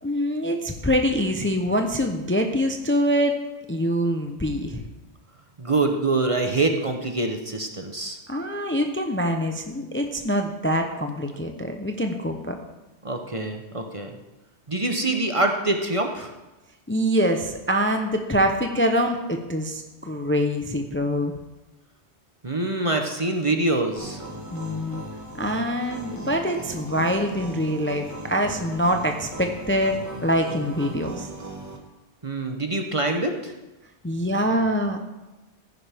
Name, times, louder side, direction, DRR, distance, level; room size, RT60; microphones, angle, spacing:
voice 1, 0.0-3.3 3.7-4.8 8.3-12.6 16.9-21.3 24.5-25.0 25.4-31.3 34.0-35.0, equal, 15° left, 4 dB, 0.6 m, -24 dB
voice 2, 5.6-8.2 13.0-14.2 14.7-16.3 22.4-24.2 32.2-33.5, right 2 dB, 30° right, 4 dB, 0.9 m, -25 dB
sound 1, 24.0-31.8, right 1 dB, 15° right, 1.3 m, -38 dB
15.0 x 9.9 x 3.5 m, 1.1 s
omnidirectional pair, 1.1 m